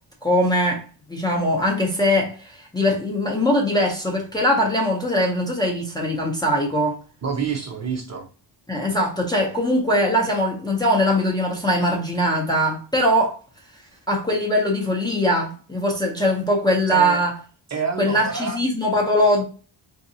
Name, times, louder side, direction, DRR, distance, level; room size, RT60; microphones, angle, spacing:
voice 1, 0.2-0.8 1.1-7.0 8.7-13.4 14.1-17.3 18.0-19.4, equal, 10° left, 0.6 m, -21 dB
voice 2, 7.2-8.3 16.9-17.2 17.7-18.6, right 5 dB, 35° right, 0.7 m, -27 dB
3.8 x 2.7 x 2.6 m
wide cardioid pair, 150°, 46 cm